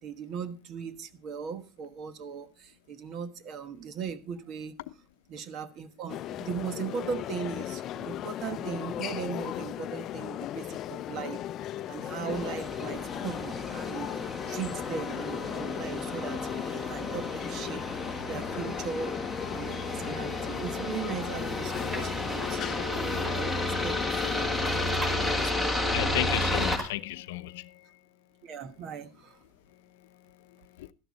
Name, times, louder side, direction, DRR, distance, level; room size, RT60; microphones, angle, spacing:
voice 1, 0.0-4.7 5.3-11.4 11.9-14.1 14.5-17.9 18.3-19.2 19.5-24.5 25.2-25.9 28.4-29.4, right 6 dB, 45° right, 1.3 m, -38 dB
sound 1, 6.1-25.5, left 12 dB, 40° left, 0.5 m, -37 dB
sound 2, 12.3-26.8, left 1 dB, 5° right, 1.6 m, -32 dB
sound 3, 21.3-24.1 24.4-26.8, right 1 dB, 20° right, 5.3 m, -41 dB
voice 2, 25.9-27.9 30.8-30.9, left 15 dB, 90° left, 0.7 m, -33 dB
13.0 x 11.5 x 4.1 m
supercardioid pair, 145°, 0 cm